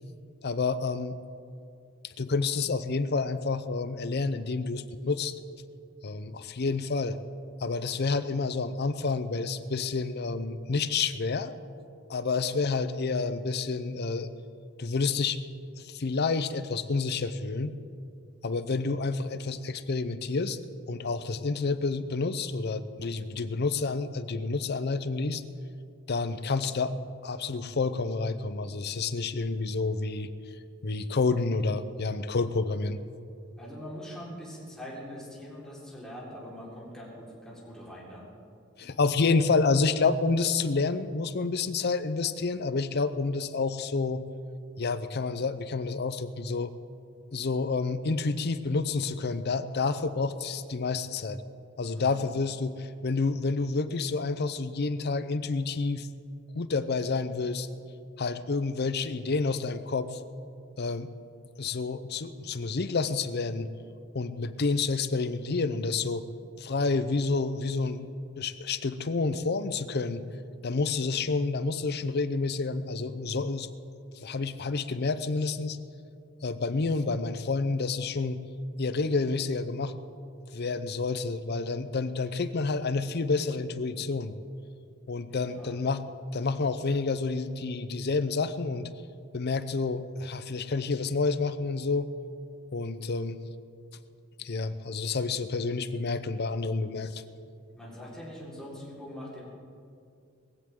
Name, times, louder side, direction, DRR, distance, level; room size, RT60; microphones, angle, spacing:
voice 1, 0.4-1.2 2.2-5.3 6.0-7.2 7.6-11.5 12.1-14.3 14.8-15.4 15.8-17.7 18.4-20.6 20.9-25.4 26.1-26.9 27.2-30.3 30.8-33.0 38.8-44.2 44.8-46.7 47.3-51.4 51.8-56.1 56.5-57.7 58.2-60.2 60.8-61.1 61.6-63.7 64.1-66.2 66.6-68.1 68.4-70.2 70.6-73.7 74.2-75.8 76.4-78.4 78.8-80.0 80.5-84.3 85.1-86.0 86.3-88.9 89.3-92.1 92.7-93.4 94.4-97.2, left 4 dB, 55° left, 12 dB, 0.6 m, -29 dB
voice 2, 33.6-38.3 51.9-52.2 85.2-85.8 97.7-99.4, equal, 5° left, -7 dB, 4.3 m, -43 dB
20.5 x 15.5 x 3.7 m, 2.4 s
head